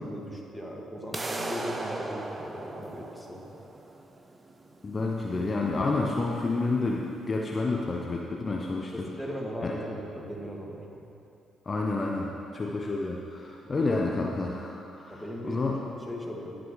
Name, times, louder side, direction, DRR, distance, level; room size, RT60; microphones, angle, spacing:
voice 1, 0.0-3.5 8.9-11.0 13.6-13.8 15.1-16.6, equal, ahead, -2 dB, 2.0 m, -38 dB
sound 1, 1.1-7.1, right 2 dB, 25° right, 0.8 m, -38 dB
voice 2, 4.8-9.1 9.6-9.7 11.7-15.8, left 3 dB, 35° left, -1 dB, 0.8 m, -29 dB
18.0 x 6.2 x 3.3 m, 2.7 s
hypercardioid pair, 45°, 0 cm